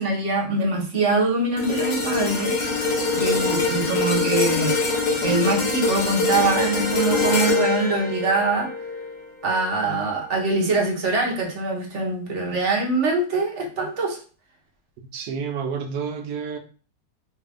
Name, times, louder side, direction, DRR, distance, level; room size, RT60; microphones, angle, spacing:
voice 1, 0.0-2.6 3.1-4.8 5.1-8.7 9.4-14.2, right 3 dB, 55° right, 1.1 m, -23 dB
sound 1, 1.6-9.9 10.4-10.6, left 3 dB, 85° left, 1.3 m, -24 dB
voice 2, 15.1-16.6, right 6 dB, 80° right, 1.2 m, -29 dB
3.3 x 2.5 x 3.4 m
omnidirectional pair, 1.7 m